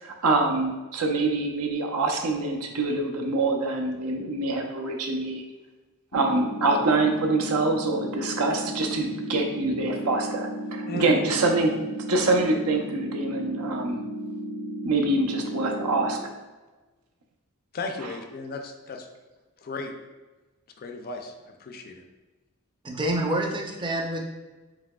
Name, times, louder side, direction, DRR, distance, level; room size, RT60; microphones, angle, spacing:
voice 1, 0.0-5.4 6.1-11.8 12.1-14.0 14.8-16.2, right 2 dB, 75° right, 2 dB, 0.6 m, -25 dB
sound 1, 6.1-16.1, equal, 90° left, 0.9 m, -34 dB
voice 2, 10.9-11.2 17.7-19.1 19.6-19.9 20.8-21.3 21.6-22.0, left 3 dB, 45° left, 4 dB, 0.4 m, -35 dB
voice 3, 22.8-24.3, right 1 dB, 20° right, 1 dB, 0.5 m, -27 dB
4.9 x 3.7 x 2.2 m, 1.2 s
head